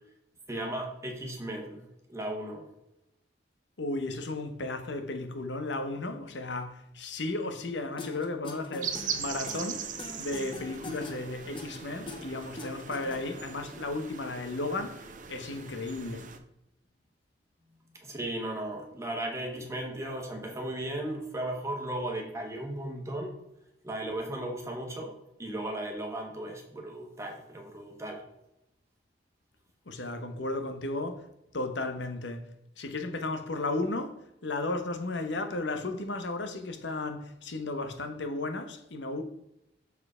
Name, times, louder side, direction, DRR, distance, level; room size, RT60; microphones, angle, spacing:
voice 1, 0.5-2.7 18.0-23.3 23.8-28.3, right 1 dB, 15° right, 1.2 m, -36 dB
voice 2, 3.8-9.9 10.2-16.3 29.9-31.3 31.5-32.5 32.8-39.2, left 2 dB, 85° left, 1.0 m, -34 dB
sound 1, 8.0-13.5, left 2 dB, 30° left, 0.9 m, -43 dB
sound 2, 8.8-16.4, right 7 dB, 45° right, 0.7 m, -40 dB
7.0 x 4.6 x 4.9 m
head